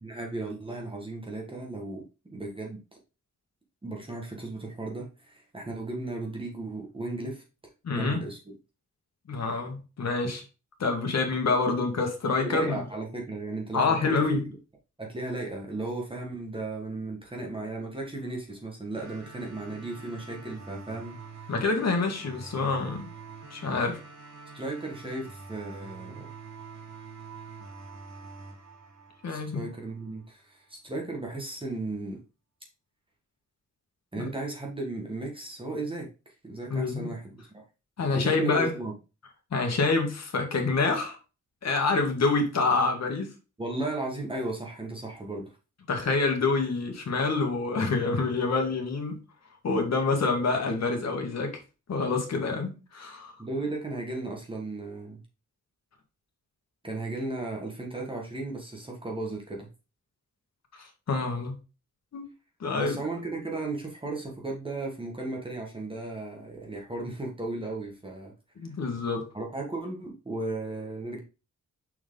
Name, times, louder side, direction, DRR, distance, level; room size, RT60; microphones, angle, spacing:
voice 1, 0.0-2.0 2.3-2.8 3.8-7.4 7.9-8.4 12.4-14.4 15.0-21.5 24.5-26.3 29.3-32.2 34.1-36.1 36.4-37.6 38.0-38.9 43.6-45.5 53.4-55.2 56.8-59.7 62.7-68.3 69.3-71.2, right 2 dB, 15° right, 1.5 m, -35 dB
voice 2, 7.8-8.2 9.3-10.4 10.8-12.8 13.7-14.5 21.5-23.1 23.5-24.0 29.2-29.6 34.2-34.3 36.7-37.1 38.0-38.7 39.5-41.2 41.6-43.3 45.9-49.2 49.6-51.6 51.9-53.3 60.8-61.5 62.1-62.3 62.6-63.0 68.6-69.3, left 3 dB, 60° left, 1.9 m, -27 dB
sound 1, 18.9-29.9, right 4 dB, 60° right, 3.3 m, -46 dB
6.2 x 4.6 x 3.8 m
wide cardioid pair, 170°, 31 cm